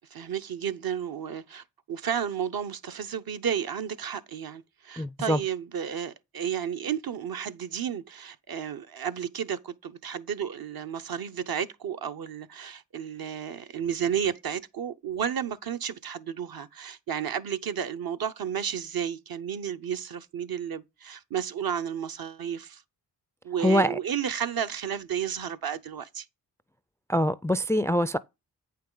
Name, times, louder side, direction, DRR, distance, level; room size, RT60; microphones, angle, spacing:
voice 1, 0.1-22.8 23.4-26.3, right 8 dB, 60° right, 0.8 m, -32 dB
voice 2, 5.0-5.4 23.6-24.0 27.1-28.2, equal, 5° left, 0.4 m, -24 dB
8.4 x 5.7 x 3.8 m
cardioid pair, 45°, 41 cm